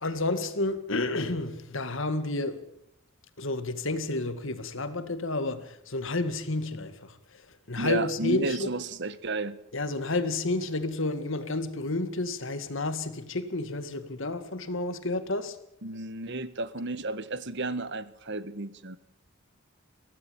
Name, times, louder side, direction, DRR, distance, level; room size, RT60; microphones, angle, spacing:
voice 1, 0.0-2.6 3.4-7.1 7.7-8.7 9.7-15.6, left 2 dB, 60° left, 2.1 m, -30 dB
voice 2, 7.8-9.6 15.8-19.0, right 2 dB, 55° right, 1.3 m, -32 dB
23.5 x 16.0 x 8.8 m
head